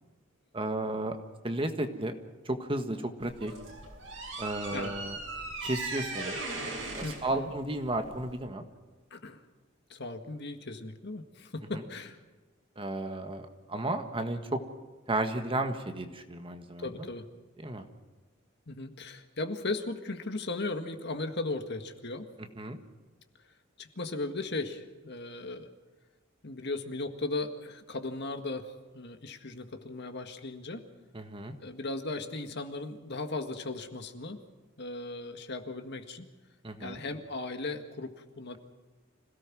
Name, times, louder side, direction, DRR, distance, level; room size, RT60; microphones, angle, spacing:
voice 1, 0.5-1.2 1.4-2.1 2.4-3.5 4.4-5.2 5.6-6.4 6.9-8.6 12.8-14.6 15.1-17.1 17.6-17.8 22.6-22.8 31.1-31.5 36.6-37.0, right 1 dB, 25° right, 6 dB, 1.6 m, -33 dB
sound 1, 3.2-8.4, right 2 dB, 65° right, 6.8 m, -38 dB
voice 2, 7.0-7.5 9.1-9.4 9.9-12.2 16.8-17.3 18.7-22.3 23.8-25.7 26.4-30.8 31.6-34.4 34.8-36.3 36.8-38.6, left 2 dB, 55° left, 7 dB, 1.8 m, -37 dB
26.5 x 17.5 x 6.2 m, 1.3 s
head